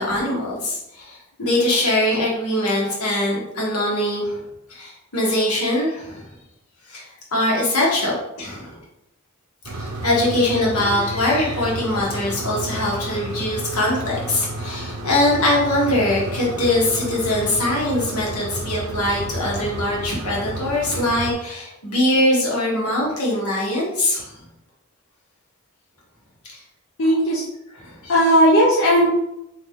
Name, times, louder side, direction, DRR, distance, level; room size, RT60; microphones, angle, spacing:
voice 1, 0.0-4.4 4.7-6.2 6.9-7.0 7.3-8.8 9.7-24.3 26.5-26.6 27.8-28.1, left 1 dB, 90° left, -4 dB, 1.6 m, -22 dB
sound 1, 9.6-21.3, right 2 dB, 80° right, 0.6 m, -31 dB
voice 2, 27.0-27.5 28.1-29.1, equal, 60° left, -4 dB, 0.7 m, -16 dB
4.0 x 3.1 x 3.7 m, 0.85 s
head